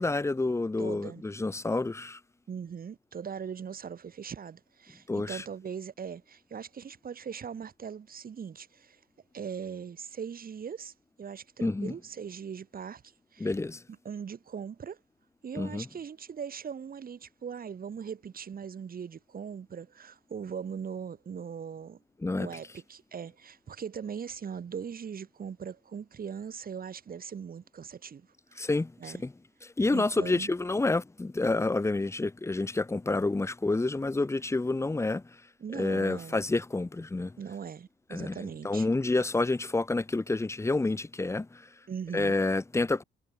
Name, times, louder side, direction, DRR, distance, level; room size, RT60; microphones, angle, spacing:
voice 1, 0.0-2.2 5.1-5.4 11.6-11.9 13.4-13.8 15.5-15.9 22.2-22.5 28.6-29.3 29.6-35.2 35.7-37.4 38.1-41.7 42.1-43.0, left 2 dB, 15° left, 1.0 m, -29 dB
voice 2, 0.8-1.2 2.5-9.0 9.3-10.9 11.2-13.0 13.3-13.5 14.1-15.0 15.4-22.0 22.3-28.7 29.0-29.2 29.9-30.5 35.6-36.4 37.4-38.9 41.9-42.4, right 7 dB, 45° right, 3.5 m, -40 dB
cardioid pair, 90°, 20 cm